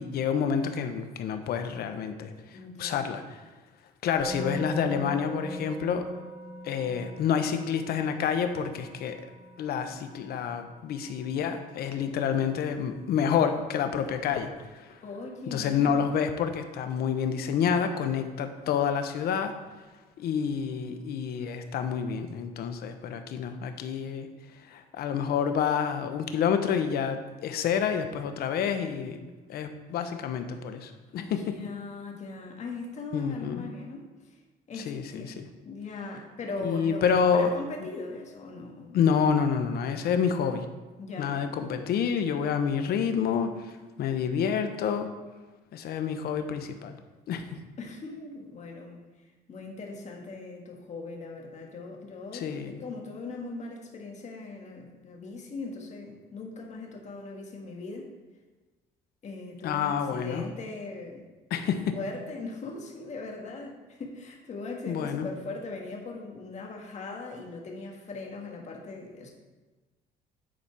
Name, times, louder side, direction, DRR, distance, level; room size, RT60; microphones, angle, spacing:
voice 1, 0.0-2.3 2.8-3.4 4.0-6.1 6.6-9.2 9.6-14.5 14.7-14.9 15.5-19.5 20.2-24.3 24.7-31.4 33.1-33.6 34.9-35.4 36.6-37.6 38.9-40.6 41.2-45.1 45.7-47.0 47.3-47.6 52.3-52.8 59.6-60.4 61.5-61.9 64.9-65.3, left 7 dB, 65° left, 7 dB, 0.9 m, -28 dB
voice 2, 2.5-3.1 15.0-16.3 31.2-34.4 34.7-37.0 37.3-39.0 41.0-41.6 47.8-49.0 49.5-58.1 59.2-61.2 61.9-69.3, left 3 dB, 45° left, 1 dB, 1.7 m, -40 dB
Musical instrument, 4.2-15.3, right 1 dB, 35° right, 2.4 m, -43 dB
10.5 x 4.2 x 4.7 m, 1.2 s
cardioid pair, 110°, 17 cm